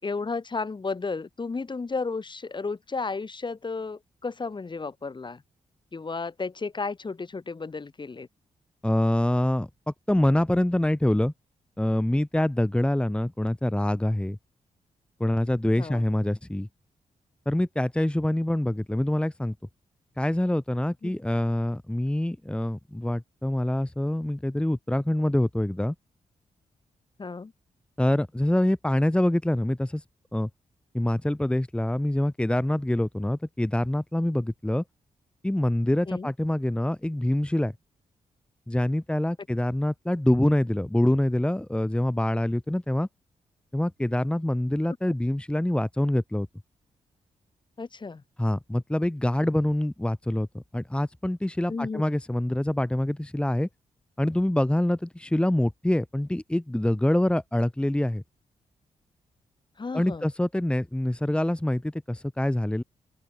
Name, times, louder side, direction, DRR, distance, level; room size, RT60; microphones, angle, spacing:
voice 1, 0.0-5.4 5.9-8.3 15.8-16.0 21.0-21.1 27.2-27.5 36.1-36.3 47.8-48.2 51.7-52.0 59.8-60.3, left 4 dB, 35° left, 4.6 m, -33 dB
voice 2, 8.8-11.3 11.8-14.4 15.2-16.7 17.4-19.5 20.2-25.9 28.0-30.0 30.3-30.5 30.9-34.8 35.4-37.7 38.7-43.1 43.7-46.5 48.4-53.7 54.2-58.2 59.9-62.8, left 1 dB, 10° left, 1.7 m, -25 dB
open air
cardioid pair, 70°, 13 cm